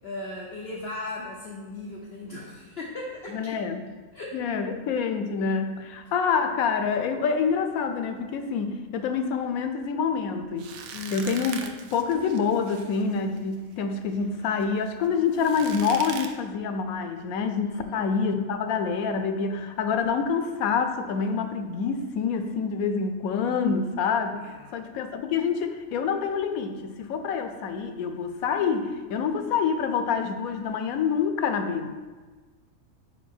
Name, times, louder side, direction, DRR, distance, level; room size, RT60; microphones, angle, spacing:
voice 1, 0.0-3.6 4.1-4.3 10.9-11.3 17.6-18.1 24.4-24.7, left 2 dB, 55° left, -2 dB, 0.8 m, -37 dB
voice 2, 3.3-3.8 4.3-10.7 11.1-31.9, left 6 dB, 85° left, 7 dB, 1.1 m, -27 dB
sound 1, 10.6-16.3, right 6 dB, 80° right, 1.0 m, -41 dB
5.4 x 4.6 x 4.4 m, 1.3 s
omnidirectional pair, 1.5 m